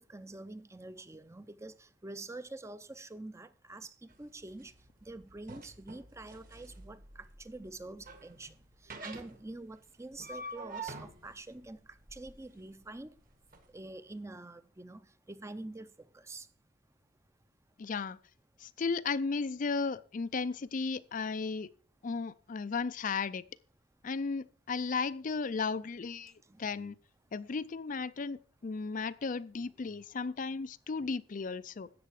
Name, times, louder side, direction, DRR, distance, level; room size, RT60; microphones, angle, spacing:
voice 1, 0.0-4.7 5.0-8.5 8.8-11.8 12.1-13.1 13.7-16.5 26.5-26.6 31.0-31.1, right 2 dB, 15° right, 0.6 m, -46 dB
sound 1, 4.1-13.6, right 2 dB, 45° right, 1.8 m, -48 dB
voice 2, 17.8-18.2 18.6-21.7 22.0-23.4 24.0-26.3 26.6-26.9 27.3-31.9, left 4 dB, 45° left, 0.4 m, -35 dB
13.0 x 8.5 x 4.8 m
head